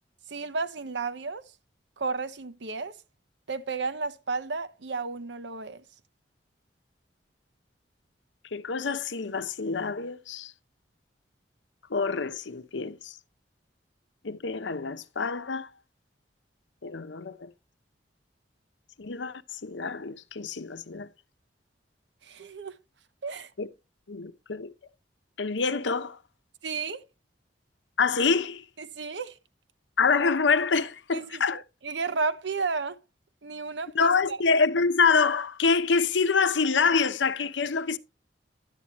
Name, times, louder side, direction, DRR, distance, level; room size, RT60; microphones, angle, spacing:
voice 1, 0.3-1.4 2.0-2.9 3.5-5.8 22.3-22.7 23.2-23.5 26.6-27.0 28.8-29.3 31.1-33.0 33.4-34.4, right 4 dB, 70° right, 0.8 m, -32 dB
voice 2, 8.5-10.5 11.9-13.1 14.2-15.7 16.8-17.5 19.0-21.1 23.6-23.7 24.1-24.7 25.4-26.2 28.0-28.6 30.0-31.6 33.9-38.0, left 5 dB, 85° left, 0.8 m, -26 dB
11.0 x 8.7 x 3.0 m
head